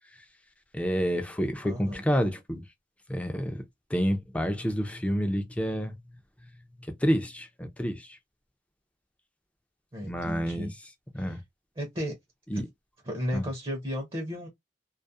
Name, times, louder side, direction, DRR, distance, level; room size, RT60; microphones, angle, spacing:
voice 1, 0.7-2.6 3.1-3.6 3.9-6.0 7.0-8.1 10.0-10.7 11.1-11.4 12.5-12.7 13.3-13.5, equal, 10° left, 0.4 m, -28 dB
voice 2, 1.6-2.0 9.9-10.7 11.2-11.4 11.8-12.1 12.5-12.6 13.0-14.5, equal, 30° right, 0.6 m, -34 dB
2.3 x 2.1 x 2.5 m
head